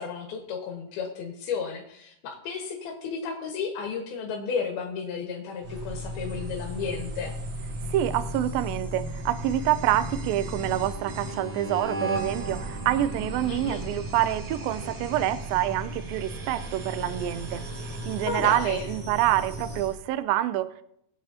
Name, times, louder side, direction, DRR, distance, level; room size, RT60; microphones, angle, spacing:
voice 1, 0.0-7.3 13.5-13.8 18.2-18.9, left 6 dB, 85° left, 1 dB, 3.3 m, -33 dB
sound 1, 5.6-20.0, right 1 dB, 55° right, 3.6 m, -35 dB
voice 2, 7.9-17.6 18.1-20.8, right 13 dB, 80° right, 13 dB, 2.3 m, -27 dB
22.0 x 8.9 x 2.9 m, 0.76 s
omnidirectional pair, 4.3 m